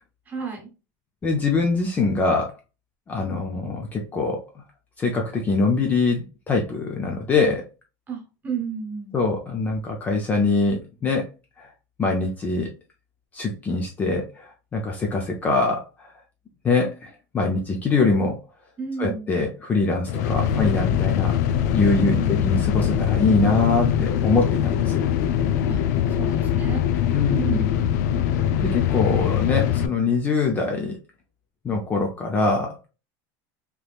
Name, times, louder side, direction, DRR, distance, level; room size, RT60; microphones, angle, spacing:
voice 1, 0.3-0.7 8.1-9.2 18.8-19.3 21.9-22.5 25.7-25.8 26.2-26.8 27.3-27.7, right 6 dB, 20° right, 1.0 m, -32 dB
voice 2, 1.2-2.5 3.1-4.5 5.0-7.7 9.1-11.3 11.6-11.7 12.0-12.7 13.3-16.1 16.6-18.4 19.0-21.4 21.7-25.1 27.1-27.6 28.6-31.0 31.6-32.8, left 3 dB, 20° left, 0.5 m, -23 dB
sound 1, 20.1-29.9, left 9 dB, 90° left, 0.4 m, -22 dB
3.4 x 3.0 x 2.2 m
cardioid pair, 170°, 9 cm